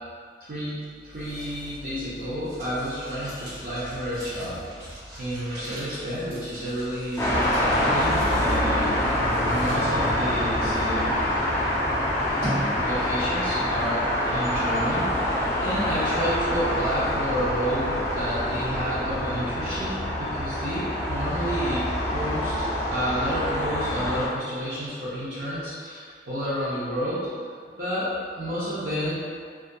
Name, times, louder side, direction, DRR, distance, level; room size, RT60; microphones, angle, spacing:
voice 1, 0.4-4.9 5.2-9.0 9.5-11.2 12.7-22.5 22.9-27.3 27.8-29.2, equal, 55° right, -11 dB, 0.5 m, -30 dB
sound 1, 0.8-13.3, equal, 70° right, 1.0 m, -40 dB
sound 2, 7.2-24.3, left 1 dB, 15° left, 0.3 m, -26 dB
2.3 x 2.2 x 2.6 m, 2.1 s
head